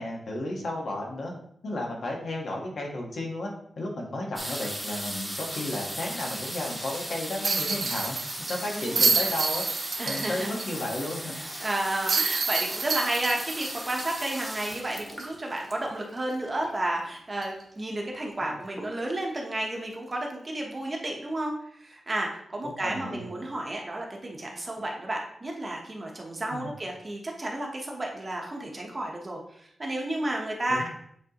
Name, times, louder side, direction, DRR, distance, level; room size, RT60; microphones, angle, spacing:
voice 1, 0.0-1.3 1.6-3.5 3.8-8.2 8.5-9.6 10.0-11.3 18.4-18.5 22.6-23.3 26.5-26.7 30.7-30.9, left 1 dB, 60° left, -1 dB, 1.4 m, -33 dB
sound 1, 4.4-16.9 17.7-17.8 18.0-18.4 18.7-19.3 19.8-19.9 20.1-20.2, equal, 5° left, 1.2 m, -37 dB
sound 2, 7.4-10.7 11.0-11.1 12.1-14.8 15.2-15.3 17.4-17.6, right 4 dB, 55° right, 0.7 m, -28 dB
voice 2, 8.6-9.3 10.0-10.5 11.6-30.9, right 1 dB, 25° right, 0 dB, 1.0 m, -32 dB
8.6 x 4.0 x 2.9 m, 0.69 s
wide cardioid pair, 170°, 0 cm